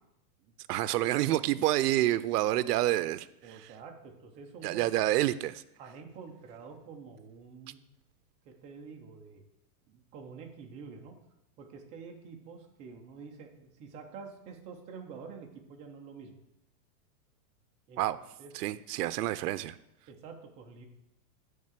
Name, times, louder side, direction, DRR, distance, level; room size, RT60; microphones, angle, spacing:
voice 1, 0.7-3.7 4.6-5.6 18.0-18.2 18.5-19.8, right 15 dB, 80° right, 14 dB, 0.6 m, -28 dB
voice 2, 3.4-4.9 5.8-7.8 8.4-9.4 9.9-11.2 11.6-16.4 17.9-18.0 18.4-18.5 20.1-20.8, right 5 dB, 15° right, 2 dB, 0.4 m, -48 dB
8.6 x 3.6 x 6.7 m, 0.85 s
supercardioid pair, 155°, 46 cm